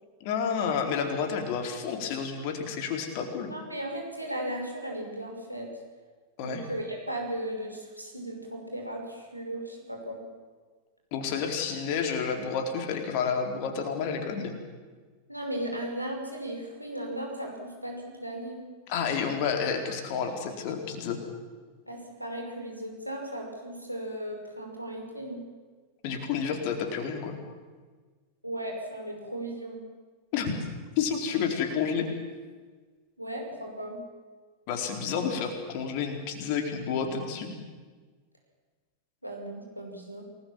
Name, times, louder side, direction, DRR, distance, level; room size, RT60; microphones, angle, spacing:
voice 1, 0.2-3.5 6.4-6.6 11.1-14.5 18.9-21.2 26.0-27.4 30.3-30.5 31.0-32.1 34.7-37.5, left 6 dB, 45° left, 5 dB, 4.3 m, -30 dB
voice 2, 3.5-5.7 6.4-10.2 15.3-18.6 21.9-25.4 28.4-29.8 33.2-34.0 39.2-40.3, right 1 dB, 90° right, 1 dB, 5.7 m, -36 dB
29.0 x 20.0 x 7.4 m, 1.4 s
figure-of-eight pair, 90°, 0 cm